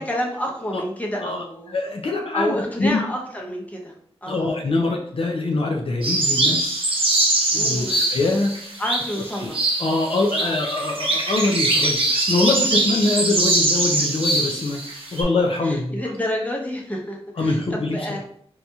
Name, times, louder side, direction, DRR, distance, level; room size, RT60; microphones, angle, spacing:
voice 1, 0.0-1.7 2.3-3.9 4.2-4.5 7.5-8.0 8.8-9.6 10.4-10.6 15.6-18.2, left 1 dB, 15° left, -1 dB, 0.8 m, -29 dB
voice 2, 1.2-3.0 4.3-6.9 7.5-8.5 9.4-9.5 9.8-16.0 17.4-18.2, left 2 dB, 60° left, 1 dB, 0.4 m, -24 dB
sound 1, 6.0-15.2, right 2 dB, 60° right, 0.8 m, -22 dB
4.0 x 2.9 x 2.3 m, 0.65 s
wide cardioid pair, 90°, 11 cm